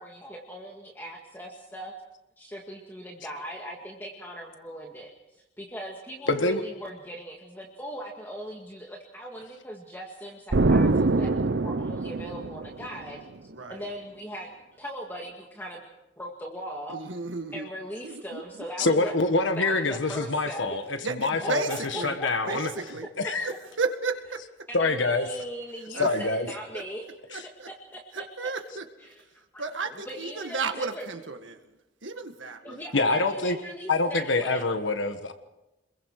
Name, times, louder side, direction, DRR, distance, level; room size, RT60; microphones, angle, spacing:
voice 1, 0.0-1.9 2.4-5.1 5.6-14.5 14.8-15.8 16.2-17.0 17.5-19.1 19.6-20.8 21.4-22.5 23.2-23.3 24.7-27.4 27.7-28.2 29.0-29.6 29.9-31.1 32.6-34.7, equal, 10° left, -1 dB, 2.0 m, -39 dB
voice 2, 6.3-6.6 18.8-22.7 23.2-23.5 24.7-25.3 26.0-26.5 27.3-27.4 32.9-33.6 33.9-35.3, left 3 dB, 85° left, 8 dB, 1.5 m, -25 dB
Explosion, 10.5-13.2, right 3 dB, 65° right, 0.7 m, -24 dB
voice 3, 13.5-13.8 16.9-17.7 18.0-18.4 21.0-22.2 22.5-23.1 23.4-24.4 25.9-26.2 26.7-26.8 27.3-27.7 28.1-28.9 29.6-31.6 32.0-32.8, right 4 dB, 90° right, 6 dB, 1.9 m, -33 dB
27.0 x 22.0 x 4.8 m, 0.97 s
head